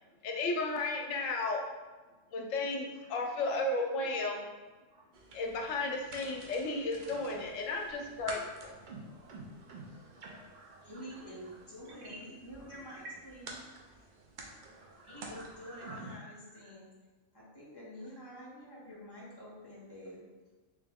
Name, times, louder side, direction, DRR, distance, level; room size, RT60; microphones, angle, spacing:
voice 1, 0.2-1.6 2.3-4.5 5.3-8.7, left 2 dB, 80° left, 2 dB, 0.9 m, -34 dB
voice 2, 2.9-3.4 4.9-5.1 5.6-6.0 6.3-6.4 7.4-7.5 8.2-8.3 9.2-9.3 9.6-13.2 14.5-16.7 20.0-20.1, right 2 dB, 75° right, -3 dB, 1.2 m, -54 dB
sound 1, 5.1-16.2, right 2 dB, 55° right, 0.5 m, -49 dB
voice 3, 10.8-13.5 15.0-16.9 17.3-20.2, equal, 20° left, -7 dB, 0.9 m, -48 dB
3.3 x 2.9 x 3.5 m, 1.3 s
omnidirectional pair, 1.3 m